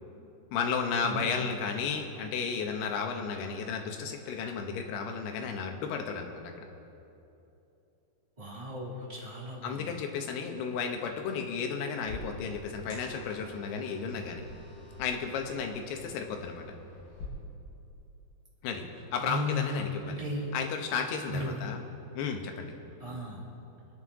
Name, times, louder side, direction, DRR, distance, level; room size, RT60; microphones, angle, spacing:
voice 1, 0.5-6.6 9.6-14.5 15.0-16.7 18.6-18.8 19.1-20.2 20.5-21.8 22.2-22.7, left 6 dB, 80° left, 4 dB, 3.0 m, -33 dB
voice 2, 1.0-1.4 8.4-9.9 19.2-20.5 21.3-21.7 23.0-23.4, left 2 dB, 15° right, -5 dB, 1.3 m, -35 dB
sound 1, 12.0-17.3, left 2 dB, 60° left, 5.6 m, -47 dB
27.0 x 9.5 x 3.7 m, 2.9 s
omnidirectional pair, 4.8 m